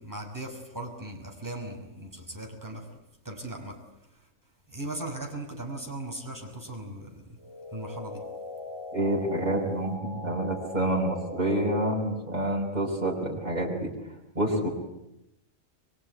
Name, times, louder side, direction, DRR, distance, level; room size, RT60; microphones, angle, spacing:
voice 1, 0.0-2.9 3.2-3.8 4.7-7.2 7.7-8.2, right 1 dB, 15° right, 0 dB, 5.6 m, -38 dB
sound 1, 7.4-12.3, left 2 dB, 20° left, 5.7 m, -41 dB
voice 2, 8.9-13.9 14.4-14.7, right 1 dB, 30° right, -4 dB, 5.6 m, -28 dB
24.5 x 23.5 x 9.6 m, 0.87 s
omnidirectional pair, 1.4 m